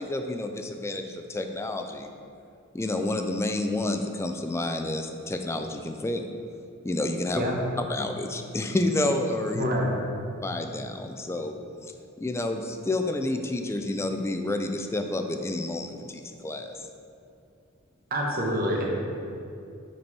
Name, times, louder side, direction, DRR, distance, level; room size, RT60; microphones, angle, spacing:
voice 1, 0.0-2.1 2.7-6.2 6.8-7.4 7.9-9.6 10.4-11.5 11.8-11.9 12.2-16.8, left 2 dB, 15° left, 5 dB, 0.3 m, -29 dB
voice 2, 9.5-9.9 18.1-18.9, equal, 50° right, -2 dB, 1.1 m, -26 dB
6.0 x 4.3 x 4.6 m, 2.5 s
head